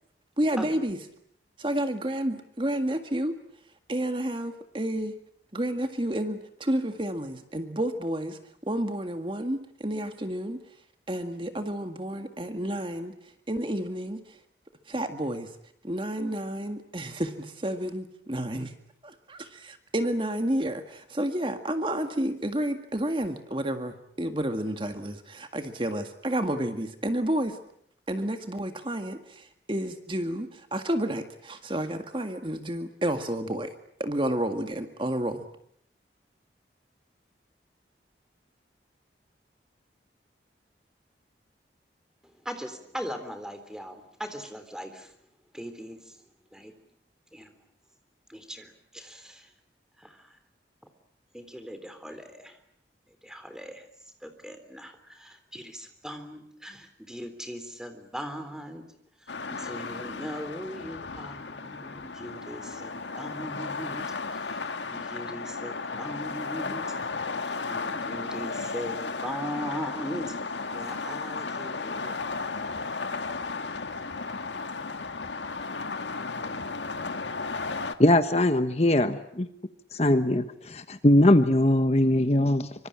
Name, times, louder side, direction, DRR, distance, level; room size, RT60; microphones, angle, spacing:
voice 1, 0.4-1.0 1.6-3.4 3.9-5.1 5.5-10.6 11.1-14.4 14.9-15.5 15.8-18.7 19.0-27.6 28.1-33.7 34.0-35.5, right 1 dB, 30° right, 1.9 m, -30 dB
voice 2, 42.4-45.1 45.5-46.1 46.5-46.7 47.3-47.6 48.3-49.5 50.0-50.4 51.3-52.6 53.2-53.9 54.2-58.8 59.2-64.0 64.3-64.6 64.9-67.0 67.4-70.4 70.7-72.2, equal, 5° right, 3.5 m, -39 dB
sound 1, 59.3-77.9, left 4 dB, 85° left, 1.8 m, -34 dB
voice 3, 78.0-79.5 79.9-82.7, left 1 dB, 35° left, 1.2 m, -21 dB
25.5 x 25.0 x 8.8 m
head